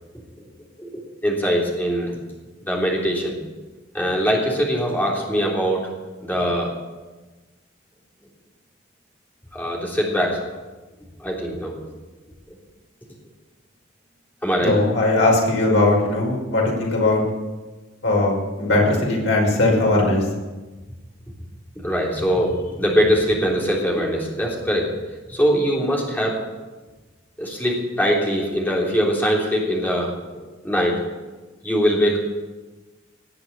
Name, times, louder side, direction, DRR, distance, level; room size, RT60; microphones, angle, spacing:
voice 1, 1.2-2.1 2.6-3.4 3.9-5.9 6.2-6.7 9.5-10.4 11.2-11.8 14.4-14.8 21.8-25.0 25.3-26.4 27.4-31.0 31.6-32.2, equal, 10° left, -3 dB, 3.4 m, -22 dB
voice 2, 14.6-17.2 18.0-20.3, left 2 dB, 70° left, -2 dB, 5.6 m, -19 dB
19.0 x 7.8 x 8.7 m, 1.2 s
head